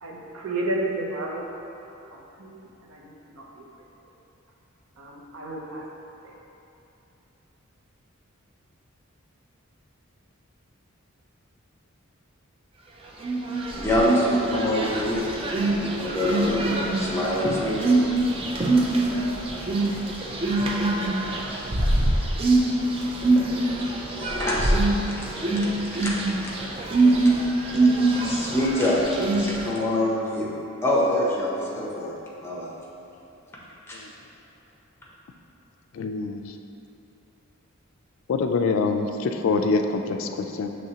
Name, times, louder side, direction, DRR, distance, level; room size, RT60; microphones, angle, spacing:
voice 1, 0.0-1.5 2.1-3.7 5.0-5.9 6.2-6.3, right 2 dB, 75° right, -1 dB, 0.6 m, -32 dB
sound 1, 13.2-29.7, right 2 dB, 25° right, 0.3 m, -24 dB
voice 2, 13.7-15.3 15.7-16.7 17.0-18.0 24.1-24.8 25.0-25.3 25.5-26.1 26.4-26.5 27.2-27.3 28.2-30.5 30.8-32.1 32.4-32.7 33.9-34.0, left 1 dB, 10° left, -6 dB, 0.7 m, -26 dB
voice 3, 35.9-36.6 38.3-40.7, left 4 dB, 65° left, 5 dB, 0.3 m, -25 dB
6.0 x 3.1 x 2.8 m, 2.9 s
head